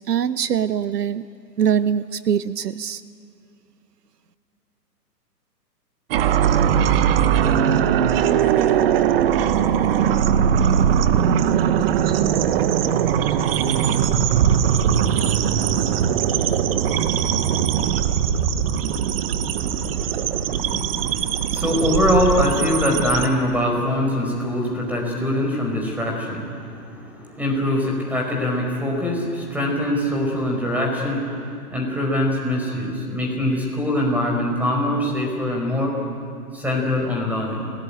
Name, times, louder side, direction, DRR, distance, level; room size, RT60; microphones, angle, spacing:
voice 1, 0.1-1.3 1.6-3.0, right 8 dB, 70° right, 15 dB, 0.9 m, -22 dB
sound 1, 6.1-23.3, right 8 dB, 35° right, 1.2 m, -20 dB
voice 2, 19.6-35.9 36.5-37.7, left 1 dB, 5° right, 0 dB, 5.1 m, -23 dB
28.5 x 18.5 x 8.9 m, 2.5 s
hypercardioid pair, 140°, 50 cm